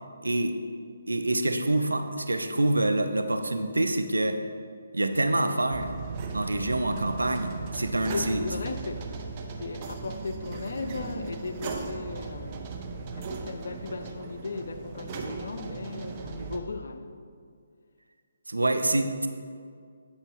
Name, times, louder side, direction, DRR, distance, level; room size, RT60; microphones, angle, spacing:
voice 1, 0.2-0.6 1.1-4.5 4.9-5.9 6.3-8.4 18.5-19.3, right 1 dB, 90° right, 7 dB, 0.5 m, -26 dB
sound 1, 5.7-16.6, right 4 dB, 30° right, 0.6 m, -37 dB
voice 2, 8.1-9.2 9.6-12.8 13.1-17.2, left 4 dB, 60° left, 7 dB, 0.5 m, -37 dB
8.0 x 5.5 x 3.0 m, 2.1 s
figure-of-eight pair, 145°, 0 cm